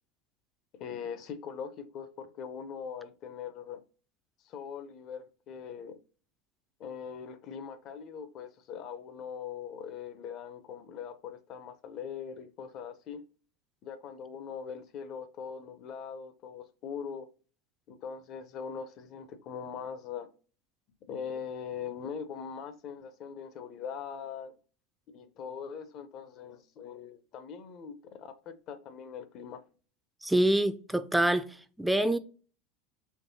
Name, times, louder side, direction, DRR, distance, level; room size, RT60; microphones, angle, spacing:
voice 1, 0.8-3.8 4.4-6.0 6.8-13.2 13.8-17.3 17.9-20.3 21.1-24.6 25.1-29.6, left 7 dB, 50° left, 0.6 m, -41 dB
voice 2, 30.2-32.2, right 1 dB, 5° right, 0.4 m, -26 dB
4.5 x 3.0 x 2.7 m
hypercardioid pair, 90°, 0 cm